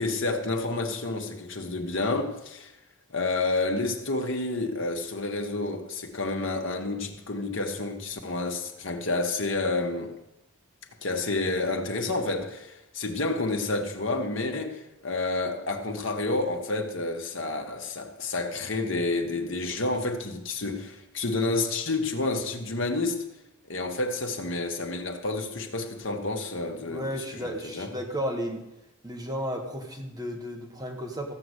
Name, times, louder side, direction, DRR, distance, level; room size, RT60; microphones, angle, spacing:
voice 1, 0.0-2.7 3.1-10.1 11.0-23.2 23.7-27.9, left 2 dB, 60° left, 1.4 m, -29 dB
voice 2, 26.9-28.6 29.0-31.3, equal, 15° right, 1.4 m, -33 dB
15.0 x 5.8 x 8.1 m
head